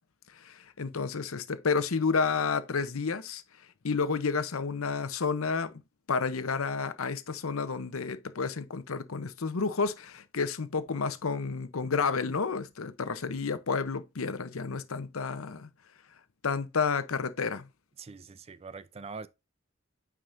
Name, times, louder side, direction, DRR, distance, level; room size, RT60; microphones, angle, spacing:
voice 1, 0.3-3.4 3.8-5.7 6.1-15.7 16.4-17.7, left 5 dB, 80° left, 0.8 m, -30 dB
voice 2, 18.0-19.3, right 4 dB, 30° right, 0.4 m, -43 dB
9.0 x 4.8 x 2.6 m
head